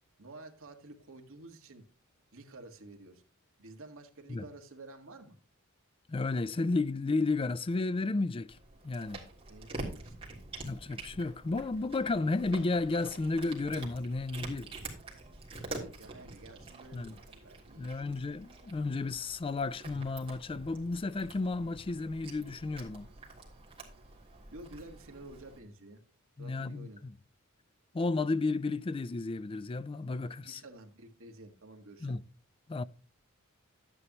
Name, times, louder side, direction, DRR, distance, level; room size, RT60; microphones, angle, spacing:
voice 1, 0.2-1.8 2.3-3.2 3.6-5.4 9.5-10.3 15.7-18.2 24.5-26.0 26.4-27.0 30.4-32.2, right 2 dB, 65° right, 1.7 m, -51 dB
voice 2, 6.1-8.6 8.8-9.2 10.6-14.7 16.9-17.1 17.8-23.1 26.4-27.1 27.9-30.6 32.0-32.2 32.7-32.8, left 3 dB, 25° left, 0.4 m, -32 dB
Cat, 8.5-25.6, right 2 dB, 25° right, 3.3 m, -47 dB
12.0 x 9.8 x 2.9 m
head